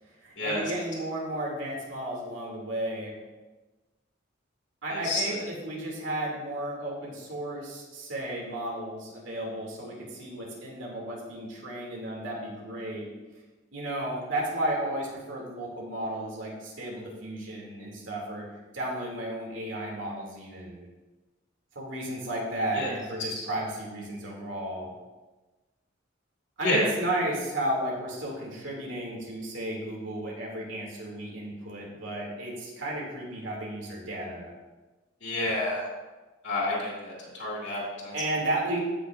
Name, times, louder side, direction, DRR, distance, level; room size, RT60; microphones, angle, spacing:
voice 1, 0.2-3.1 4.8-13.1 13.7-18.5 18.7-20.9 21.7-24.9 26.6-34.5 38.1-38.8, right 1 dB, 70° right, -3 dB, 2.5 m, -33 dB
voice 2, 4.9-5.2 22.7-22.9 23.3-23.4 26.6-26.9 35.2-35.8 36.4-38.2, left 1 dB, 65° left, -5 dB, 2.4 m, -29 dB
15.0 x 6.1 x 2.5 m, 1.2 s
head